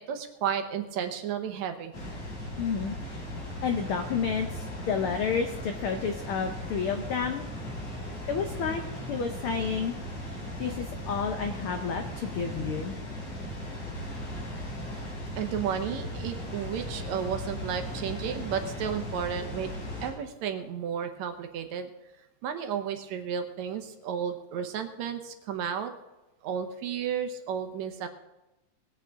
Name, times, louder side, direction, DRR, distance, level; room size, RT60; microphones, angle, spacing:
voice 1, 0.0-1.9 5.9-6.0 15.4-21.9 22.4-25.9 26.4-28.1, right 8 dB, 75° right, 7 dB, 2.2 m, -33 dB
Water, 1.9-20.1, left 1 dB, 60° left, 5.0 m, -37 dB
voice 2, 2.6-3.2 3.6-7.5 8.3-12.9, left 6 dB, 85° left, 6 dB, 1.2 m, -31 dB
20.5 x 8.4 x 3.7 m, 0.98 s
omnidirectional pair, 3.4 m